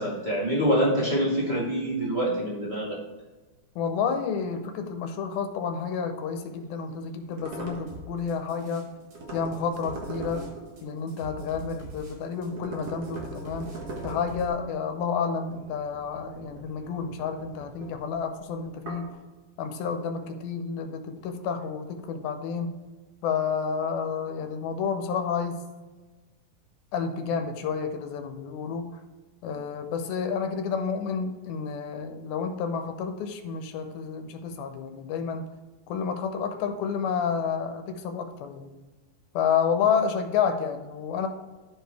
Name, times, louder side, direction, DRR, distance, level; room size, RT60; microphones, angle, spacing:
voice 1, 0.0-3.0, equal, 30° right, -5 dB, 0.8 m, -25 dB
voice 2, 3.8-8.9 9.3-10.5 10.8-13.8 14.0-19.1 19.6-22.8 23.2-25.6 26.9-29.0 29.4-35.5 35.9-38.8 39.3-41.3, left 6 dB, 85° left, 6 dB, 2.6 m, -30 dB
sound 1, 6.4-11.9 12.3-19.1, right 2 dB, 55° right, 1.8 m, -42 dB
sound 2, 7.9-9.1 9.4-14.5, right 1 dB, 75° right, 4.9 m, -43 dB
13.0 x 4.7 x 3.4 m, 1.3 s
omnidirectional pair, 4.2 m